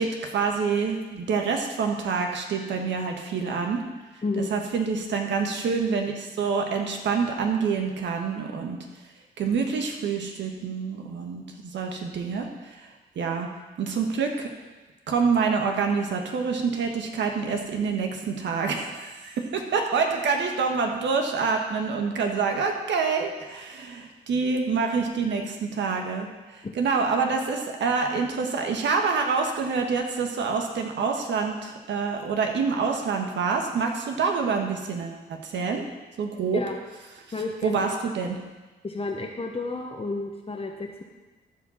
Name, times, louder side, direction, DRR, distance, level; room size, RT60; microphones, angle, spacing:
voice 1, 0.0-3.8 4.4-8.8 9.4-12.9 13.1-13.5 13.8-14.5 15.1-35.8 36.2-36.6 37.6-38.4, right 5 dB, 75° right, 3 dB, 1.5 m, -27 dB
voice 2, 4.2-4.5 26.6-26.7 36.5-36.7 37.3-37.9 38.8-41.0, left 3 dB, 30° left, 0 dB, 1.2 m, -31 dB
13.5 x 5.1 x 5.8 m, 1.2 s
cardioid pair, 65°, 19 cm